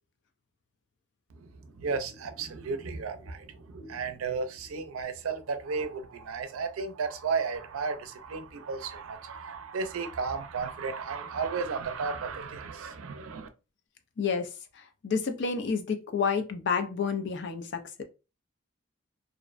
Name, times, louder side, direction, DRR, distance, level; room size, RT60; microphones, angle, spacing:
voice 1, 1.3-13.5, right 5 dB, 80° right, 0.4 m, -34 dB
voice 2, 14.2-14.5 14.8-18.0, left 5 dB, 55° left, 0.4 m, -30 dB
2.4 x 2.1 x 2.4 m
head